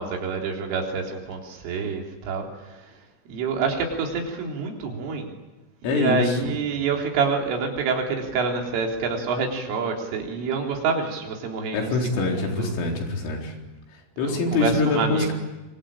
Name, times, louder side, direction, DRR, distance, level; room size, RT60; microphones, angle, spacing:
voice 1, 0.0-5.3 5.8-12.8 14.2-15.3, right 5 dB, 85° right, 1 dB, 6.1 m, -27 dB
voice 2, 5.8-6.5 11.7-13.5 13.9-15.3, left 3 dB, 90° left, 1 dB, 6.7 m, -24 dB
25.5 x 25.0 x 8.9 m, 1.1 s
omnidirectional pair, 5.6 m